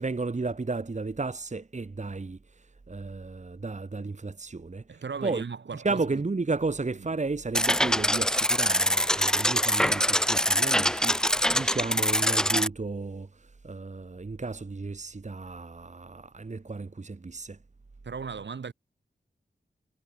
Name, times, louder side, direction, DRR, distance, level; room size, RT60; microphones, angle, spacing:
voice 1, 0.0-5.4 5.7-17.6, right 3 dB, 40° right, 1.7 m, -33 dB
voice 2, 4.9-6.2 7.0-7.1 18.0-18.7, right 5 dB, 85° right, 5.9 m, -37 dB
sound 1, 7.5-12.7, equal, 5° left, 2.3 m, -24 dB
wide cardioid pair, 60°, 18 cm